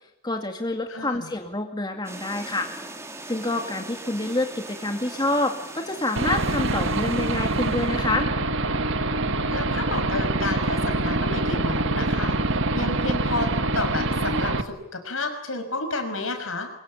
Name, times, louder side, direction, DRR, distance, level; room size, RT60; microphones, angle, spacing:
voice 1, 0.2-2.7 3.3-8.3, left 2 dB, 20° left, 4 dB, 2.3 m, -27 dB
voice 2, 0.9-1.3 9.5-12.4 12.7-16.7, left 2 dB, 75° left, 7 dB, 6.0 m, -31 dB
sound 1, 2.0-8.2, right 2 dB, 15° right, 3.0 m, -40 dB
Aircraft / Engine, 6.2-14.6, right 2 dB, 65° right, 1.7 m, -25 dB
24.5 x 22.5 x 9.9 m, 0.79 s
head